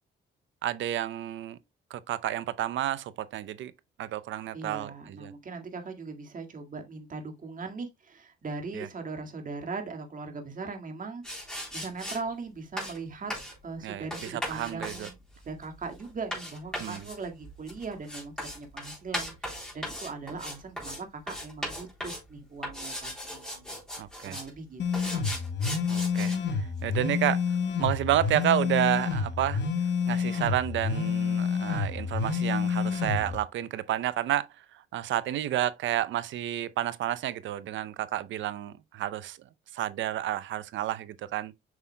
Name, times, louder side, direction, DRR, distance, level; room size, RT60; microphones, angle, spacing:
voice 1, 0.6-1.6 1.9-3.7 4.0-5.3 8.7-8.9 13.8-15.1 16.8-17.0 24.0-24.4 25.9-27.4 27.8-29.6 30.1-39.4 39.7-41.5, right 12 dB, 70° right, 0.6 m, -30 dB
voice 2, 4.5-13.3 13.6-23.8 24.2-24.8 25.1-25.2, right 4 dB, 40° right, 2.0 m, -40 dB
sound 1, 11.2-12.2 12.8-13.0 13.3-13.6 14.1-21.0 21.3-22.3 22.6-24.5 24.9-26.4, equal, 5° left, 3.4 m, -37 dB
sound 2, 24.8-33.3, left 6 dB, 65° left, 1.4 m, -29 dB
7.8 x 5.6 x 2.2 m
cardioid pair, 90°, 20 cm